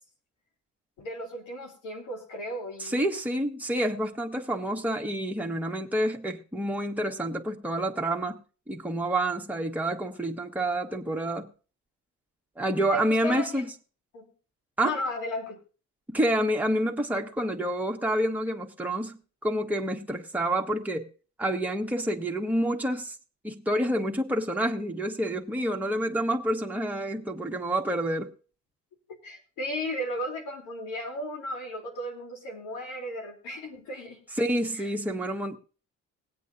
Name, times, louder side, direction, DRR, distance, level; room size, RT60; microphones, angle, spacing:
voice 1, 1.0-3.0 12.9-13.7 14.1-14.3 14.8-15.6 29.2-34.2 34.8-34.9, left 1 dB, 90° left, 3.4 m, -35 dB
voice 2, 2.8-8.4 8.7-11.5 12.6-13.7 14.8-14.9 16.1-21.1 21.4-23.1 23.4-28.3 34.4-35.6, right 1 dB, 5° right, 1.5 m, -28 dB
20.5 x 8.4 x 2.7 m
cardioid pair, 90°, 30 cm